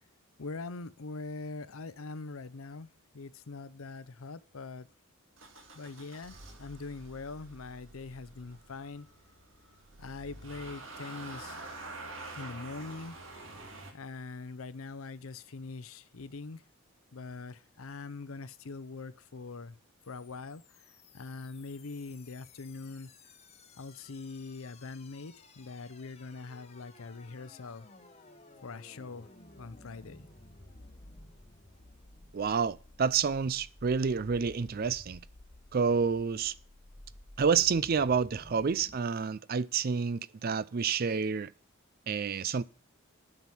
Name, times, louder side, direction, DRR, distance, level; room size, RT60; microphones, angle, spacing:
voice 1, 0.4-2.9 3.1-4.9 5.7-9.1 10.0-11.6 12.3-13.4 13.9-16.6 17.1-19.8 20.1-20.8 21.1-23.1 23.8-27.9 28.6-29.3 29.6-30.2, left 3 dB, 70° left, 0.7 m, -43 dB
Motor vehicle (road) / Engine starting, 5.4-13.9, right 2 dB, 60° right, 2.1 m, -47 dB
sound 1, 20.0-39.0, left 2 dB, 30° left, 0.9 m, -55 dB
voice 2, 32.3-35.2 35.7-36.5 37.4-41.5 42.1-42.6, right 5 dB, 45° right, 0.4 m, -29 dB
9.3 x 6.1 x 7.2 m
head